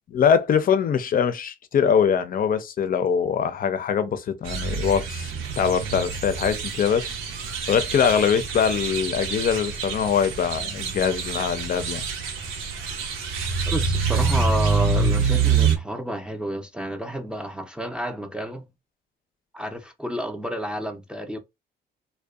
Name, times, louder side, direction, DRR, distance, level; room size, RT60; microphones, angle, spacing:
voice 1, 0.1-7.1 7.7-12.1, left 7 dB, 45° left, 0.5 m, -23 dB
sound 1, 4.5-15.8, right 5 dB, 85° right, 0.8 m, -26 dB
voice 2, 13.6-18.7 19.5-21.4, equal, 5° right, 0.5 m, -30 dB
2.6 x 2.2 x 2.3 m
cardioid pair, 90°, 20 cm